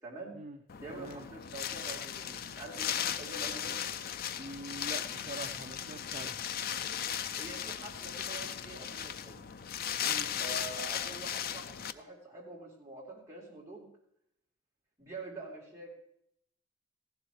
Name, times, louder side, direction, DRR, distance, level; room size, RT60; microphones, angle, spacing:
voice 1, 0.0-0.4 0.8-3.8 7.3-9.4 10.4-13.9 15.0-15.9, right 2 dB, 15° right, -5 dB, 3.6 m, -46 dB
Wind, 0.7-11.9, left 9 dB, 45° left, 0.5 m, -37 dB
voice 2, 0.9-1.3 4.4-6.4 10.1-10.3, right 2 dB, 35° right, 4 dB, 0.6 m, -44 dB
15.5 x 11.5 x 3.2 m, 0.73 s
head